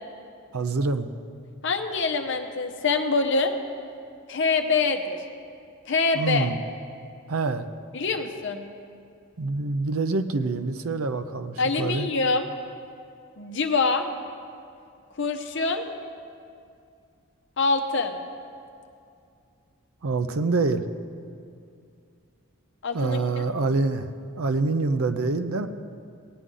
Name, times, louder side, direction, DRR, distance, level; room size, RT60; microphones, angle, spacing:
voice 1, 0.5-1.1 6.1-6.6 7.3-7.7 9.4-12.1 20.0-20.9 22.9-24.1 24.3-25.7, right 3 dB, 75° right, 10 dB, 0.6 m, -26 dB
voice 2, 1.6-3.5 4.3-5.2 5.9-6.5 7.9-8.7 11.6-12.5 13.4-14.1 15.2-15.8 17.6-18.2 22.8-23.4, left 4 dB, 55° left, 5 dB, 0.8 m, -25 dB
17.5 x 9.5 x 3.8 m, 2.4 s
head